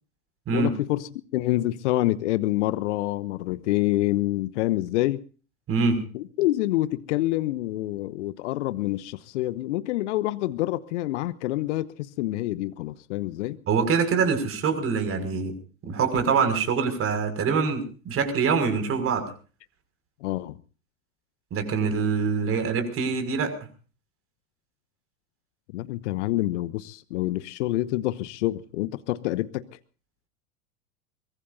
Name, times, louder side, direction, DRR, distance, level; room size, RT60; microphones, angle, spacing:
voice 1, 0.5-5.2 6.1-13.6 20.2-20.6 25.7-29.7, left 16 dB, 55° left, 17 dB, 1.1 m, -27 dB
voice 2, 5.7-6.0 13.7-15.5 15.8-19.2 21.5-23.5, right 5 dB, 35° right, 8 dB, 6.0 m, -24 dB
24.0 x 22.0 x 2.7 m, 0.38 s
figure-of-eight pair, 85°, 41 cm